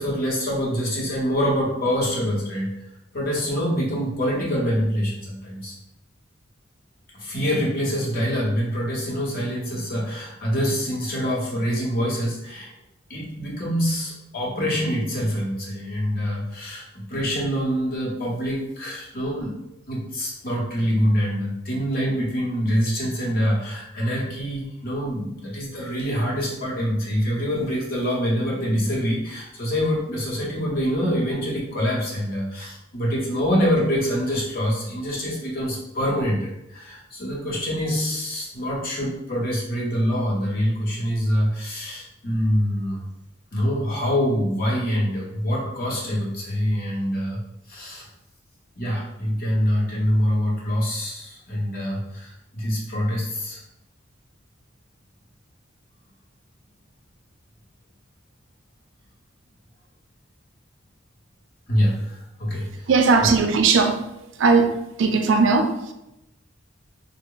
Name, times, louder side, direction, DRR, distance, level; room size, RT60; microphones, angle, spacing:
voice 1, 0.0-2.8 3.1-5.7 7.1-12.7 13.1-19.6 19.9-43.0 43.5-47.4 47.7-48.1 48.8-53.6 61.7-62.9 63.2-63.3, equal, 50° left, -4 dB, 0.8 m, -25 dB
voice 2, 62.5-64.1 64.4-65.9, right 4 dB, 70° right, 7 dB, 0.4 m, -19 dB
3.2 x 2.0 x 3.7 m, 0.87 s
head